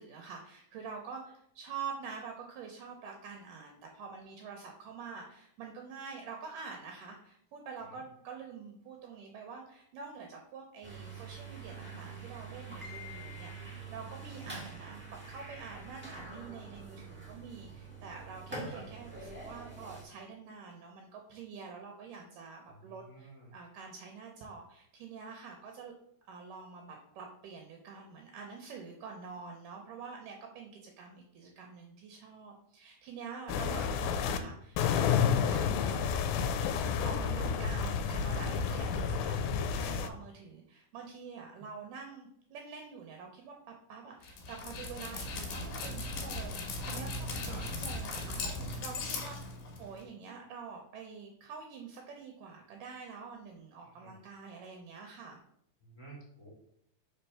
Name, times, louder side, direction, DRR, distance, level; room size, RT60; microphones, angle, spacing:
voice 1, 0.0-25.9 26.3-36.4 37.0-55.4, right 5 dB, 75° right, 2 dB, 2.2 m, -46 dB
sound 1, 10.8-20.0, right 3 dB, 10° right, 0.7 m, -45 dB
voice 2, 22.8-23.5 41.6-41.7 47.5-47.7 53.8-54.1 55.8-56.5, right 2 dB, 15° left, -4 dB, 2.3 m, -52 dB
sound 2, 33.5-34.4 34.8-40.1, left 7 dB, 85° left, 2.4 m, -30 dB
Dog, 44.2-50.0, left 2 dB, 65° left, 2.6 m, -38 dB
4.9 x 4.4 x 5.6 m, 0.70 s
omnidirectional pair, 4.1 m